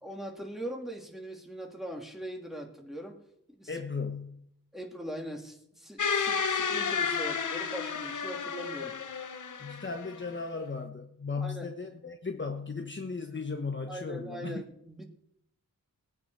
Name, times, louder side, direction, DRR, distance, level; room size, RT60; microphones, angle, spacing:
voice 1, 0.0-3.2 3.5-3.7 4.7-9.0 11.4-11.7 13.9-15.1, right 1 dB, ahead, 1 dB, 2.9 m, -41 dB
voice 2, 3.7-4.5 9.6-14.6, left 4 dB, 30° left, 3 dB, 1.2 m, -36 dB
sound 1, 6.0-10.4, left 6 dB, 55° left, 1.0 m, -32 dB
19.5 x 9.5 x 4.8 m, 0.73 s
wide cardioid pair, 75°, 36 cm